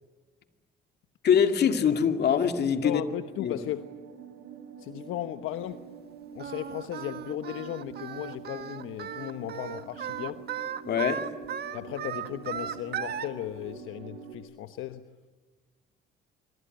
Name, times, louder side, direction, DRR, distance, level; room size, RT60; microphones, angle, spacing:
voice 1, 1.2-3.0 3.4-3.6 10.8-11.3, left 7 dB, 50° left, 2.2 m, -23 dB
sound 1, 1.6-14.4, right 6 dB, 75° right, 4.8 m, -46 dB
voice 2, 2.8-3.9 4.8-5.8 6.3-10.5 11.7-15.1, left 12 dB, 75° left, 1.1 m, -36 dB
Singing, 6.4-13.3, right 9 dB, 50° right, 1.6 m, -36 dB
26.5 x 24.5 x 9.2 m
cardioid pair, 110°, 21 cm